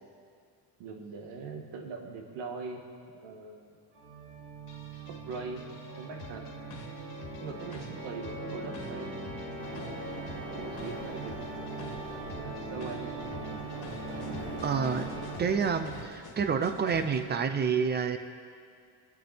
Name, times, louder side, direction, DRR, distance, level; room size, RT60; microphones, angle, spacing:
voice 1, 0.8-2.9 3.1-3.8 5.1-6.5 7.4-9.7 10.5-11.5 12.3-13.6, right 4 dB, 80° right, 3 dB, 1.9 m, -41 dB
Organ, 3.9-15.8, right 2 dB, 60° right, 2.5 m, -41 dB
sound 1, 4.7-17.2, left 3 dB, 45° left, 2.0 m, -48 dB
sound 2, 9.6-16.1, right 1 dB, 45° right, 3.5 m, -42 dB
voice 2, 14.6-15.1 15.4-18.2, right 6 dB, 25° right, 9 dB, 0.7 m, -28 dB
22.5 x 8.5 x 4.4 m, 2.2 s
cardioid pair, 155°, 43 cm